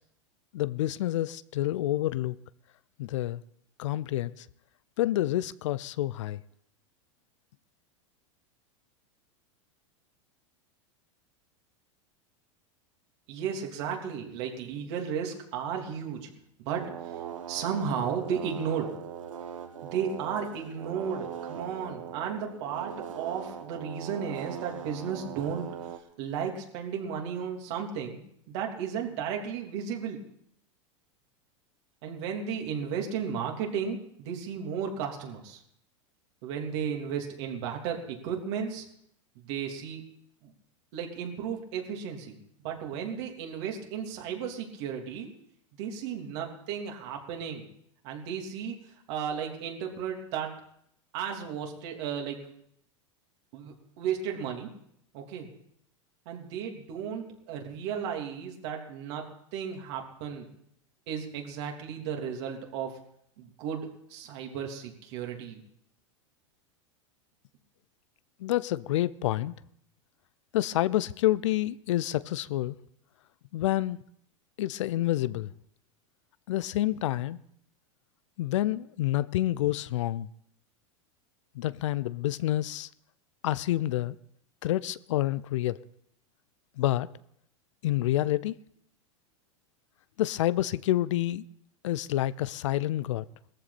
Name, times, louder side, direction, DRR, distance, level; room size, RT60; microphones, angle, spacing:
voice 1, 0.5-2.4 3.0-3.4 3.8-4.5 5.0-6.4 68.4-69.5 70.5-72.8 73.5-74.0 74.6-75.5 76.5-77.4 78.4-80.3 81.5-82.9 83.4-84.2 84.6-85.8 86.8-87.1 87.8-88.6 90.2-91.4 91.8-93.3, left 14 dB, 70° left, 0.6 m, -28 dB
voice 2, 13.3-16.3 16.6-17.2 17.5-18.9 19.9-25.7 26.2-28.2 28.5-30.2 32.0-35.6 36.4-38.8 39.3-40.0 40.4-40.5 40.9-42.4 42.6-45.3 45.8-47.6 48.0-50.5 51.1-52.4 53.5-54.7 55.1-55.5 56.2-59.2 59.5-60.5 61.1-63.0 63.4-65.6, right 7 dB, 60° right, 3.2 m, -34 dB
sound 1, 16.8-26.0, right 8 dB, 85° right, 1.4 m, -40 dB
19.0 x 14.5 x 4.3 m
hypercardioid pair, 105°, 16 cm